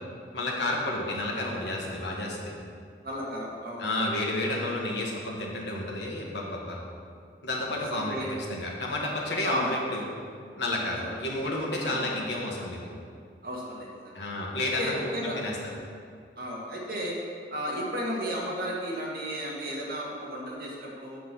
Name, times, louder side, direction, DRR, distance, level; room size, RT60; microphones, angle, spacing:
voice 1, 0.3-2.5 3.8-6.8 7.4-8.2 8.5-10.0 10.6-12.9 14.1-15.0 15.2-15.5, left 2 dB, 85° left, -2 dB, 1.6 m, -31 dB
voice 2, 3.0-3.9 7.9-8.4 9.3-9.7 11.0-11.1 11.8-12.1 13.4-14.2 14.8-15.4 16.4-17.2 17.5-21.2, equal, 55° right, -4 dB, 1.9 m, -34 dB
7.8 x 6.0 x 6.0 m, 2.3 s
head